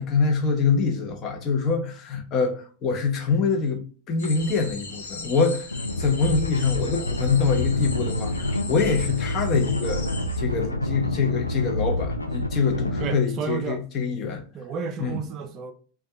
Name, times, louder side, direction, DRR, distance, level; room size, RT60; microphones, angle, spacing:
voice 1, 0.0-5.7 6.0-14.4 15.0-15.2, left 5 dB, 35° left, 0.6 m, -25 dB
sound 1, 4.2-10.4, left 4 dB, 65° left, 0.7 m, -39 dB
sound 2, 5.7-13.1, left 1 dB, 85° left, 0.4 m, -28 dB
voice 2, 13.0-13.8 14.5-15.7, right 6 dB, 35° right, 0.4 m, -31 dB
2.5 x 2.3 x 3.3 m
figure-of-eight pair, 90°, 0 cm